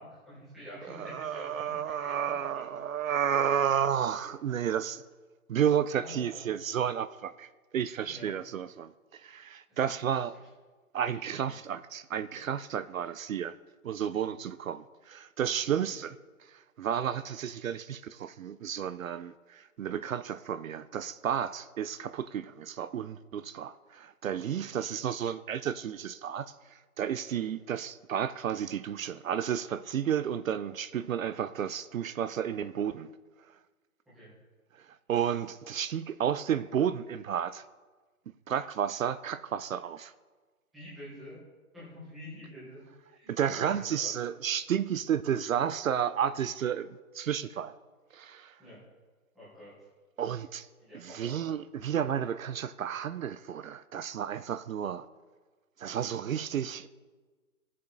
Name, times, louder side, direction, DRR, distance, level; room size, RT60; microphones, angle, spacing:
voice 1, 0.0-2.7 6.0-6.5 8.0-8.3 9.7-9.8 10.3-10.5 11.1-11.6 15.8-15.9 24.4-25.0 27.3-27.4 34.1-34.3 40.7-41.4 41.7-42.8 43.1-44.1 44.5-44.6 48.6-48.8 49.3-49.7 50.8-51.4, equal, ahead, 0.6 m, -48 dB
voice 2, 0.9-5.0 5.5-10.3 10.9-13.5 13.8-16.2 16.5-33.1 34.8-37.6 38.5-40.1 43.3-47.7 48.1-48.5 50.2-50.7 50.9-55.1 55.8-56.9, right 9 dB, 65° right, 0.5 m, -32 dB
16.5 x 7.4 x 3.9 m
hypercardioid pair, 160°, 44 cm